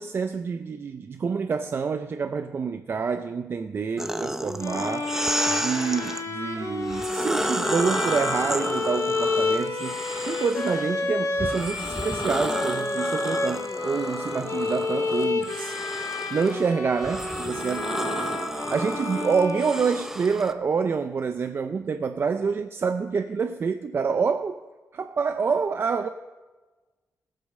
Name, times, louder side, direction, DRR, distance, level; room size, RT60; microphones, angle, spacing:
voice 1, 0.0-5.1 5.5-10.0 10.3-17.9 18.7-24.6 24.9-26.1, right 5 dB, 40° right, 0.5 m, -27 dB
sound 1, 4.0-6.2 6.8-10.9 11.4-20.5, right 1 dB, 5° right, 0.7 m, -32 dB
sound 2, 4.6-20.3, left 3 dB, 65° left, 2.4 m, -30 dB
16.5 x 9.0 x 6.5 m
cardioid pair, 120°, 6 cm